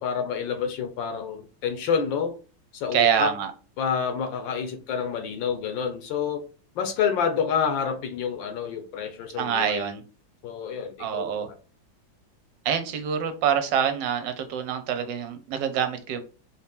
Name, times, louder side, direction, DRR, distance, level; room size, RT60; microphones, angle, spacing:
voice 1, 0.0-2.4 2.7-3.3 3.8-6.4 6.7-9.9 10.4-11.5, left 7 dB, 80° left, 1.5 m, -28 dB
voice 2, 2.9-3.5 9.4-10.0 11.0-11.5 12.6-16.2, right 8 dB, 75° right, 1.3 m, -26 dB
4.3 x 2.8 x 3.5 m
omnidirectional pair, 2.1 m